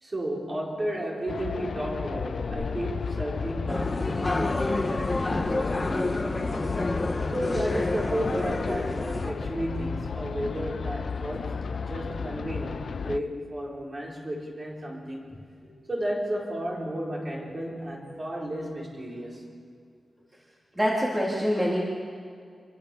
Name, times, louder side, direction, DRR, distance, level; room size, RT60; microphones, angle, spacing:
voice 1, 0.0-6.8 7.3-15.2 15.9-19.4, right 1 dB, 30° right, -3 dB, 4.9 m, -33 dB
sound 1, 1.3-13.2, left 5 dB, 60° left, 0.8 m, -33 dB
sound 2, 3.7-9.3, left 2 dB, 25° left, 1.9 m, -29 dB
voice 2, 20.7-21.8, equal, 15° right, -4 dB, 3.4 m, -25 dB
26.5 x 22.5 x 7.1 m, 2.3 s
wide cardioid pair, 140°, 0 cm